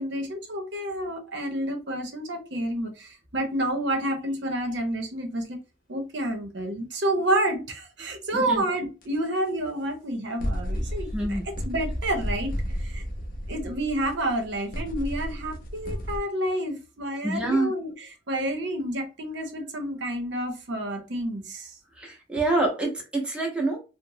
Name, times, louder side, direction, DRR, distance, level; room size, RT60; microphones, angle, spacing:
voice 1, 0.0-5.6 5.9-12.5 12.8-13.0 13.5-21.8, right 1 dB, 70° right, 0.7 m, -29 dB
voice 2, 8.3-8.6 11.1-11.5 17.2-17.7 22.0-23.8, right 2 dB, 5° right, 0.6 m, -26 dB
sound 1, 9.0-9.1 10.4-16.2, equal, 50° left, 0.5 m, -32 dB
2.9 x 2.0 x 2.6 m
head